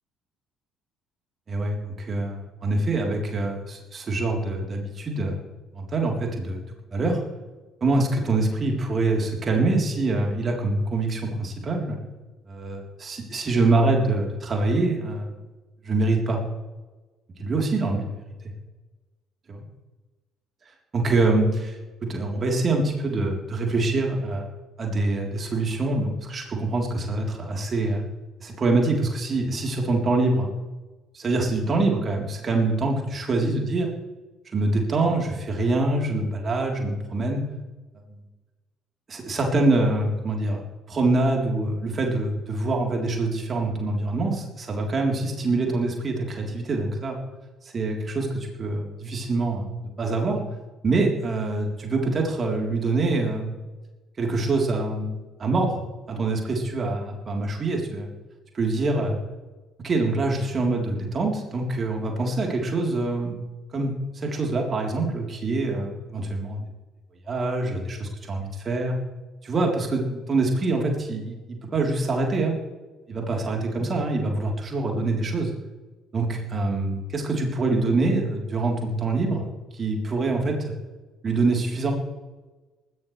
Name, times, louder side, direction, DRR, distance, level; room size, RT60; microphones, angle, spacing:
voice 1, 1.5-5.4 5.7-6.6 6.9-7.2 7.8-12.0 12.5-15.3 15.8-16.4 17.4-18.3 20.9-24.5 24.8-28.0 28.4-30.5 31.1-33.9 34.5-37.4 38.1-38.2 39.1-47.2 47.6-50.4 50.8-53.5 54.2-55.8 56.1-58.1 58.5-59.2 59.8-63.4 63.7-66.7 67.3-69.0 69.4-72.5 73.1-75.5 76.1-79.4 79.7-80.8 81.2-81.9, right 2 dB, 35° right, 1 dB, 3.8 m, -25 dB
19.5 x 15.0 x 3.4 m, 1.2 s
figure-of-eight pair, 50°, 0 cm